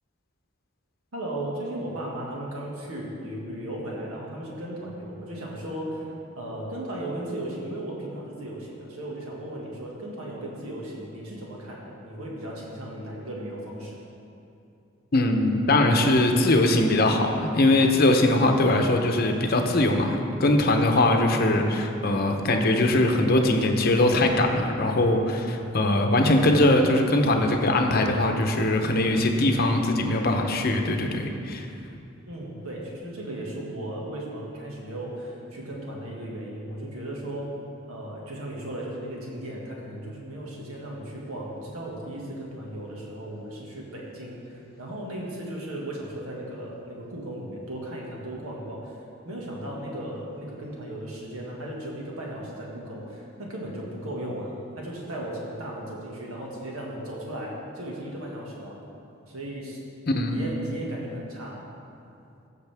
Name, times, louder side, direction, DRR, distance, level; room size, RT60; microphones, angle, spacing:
voice 1, 1.1-14.0 32.3-37.5 37.9-49.0 49.2-58.8 59.3-59.8 60.3-61.6, right 1 dB, 90° right, -3 dB, 1.8 m, -36 dB
voice 2, 15.1-31.7 60.1-60.4, left 1 dB, 45° left, 4 dB, 0.7 m, -21 dB
15.0 x 6.6 x 3.5 m, 2.6 s
head